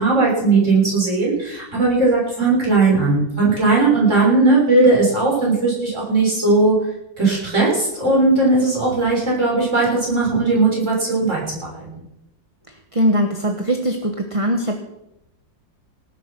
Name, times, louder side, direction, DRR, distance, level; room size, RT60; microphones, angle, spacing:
voice 1, 0.0-6.7 7.2-12.0, right 3 dB, 35° right, -4 dB, 7.2 m, -17 dB
voice 2, 12.9-14.8, equal, 20° right, 4 dB, 1.0 m, -20 dB
18.5 x 10.0 x 6.0 m, 0.84 s
omnidirectional pair, 2.1 m